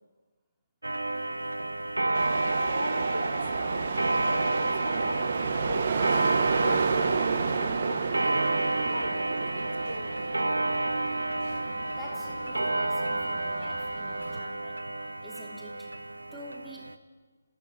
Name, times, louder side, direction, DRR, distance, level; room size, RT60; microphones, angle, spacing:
Clock, 0.8-16.9, right 2 dB, 70° right, 1.5 m, -30 dB
voice 1, 1.0-11.8, left 1 dB, 80° left, 8 dB, 4.1 m, -41 dB
sound 1, 2.1-14.4, right 5 dB, 40° right, 1.9 m, -32 dB
voice 2, 12.0-14.9 15.2-15.9 16.3-17.1, equal, ahead, -3 dB, 3.2 m, -47 dB
27.5 x 19.5 x 8.6 m, 1.4 s
figure-of-eight pair, 150°, 0 cm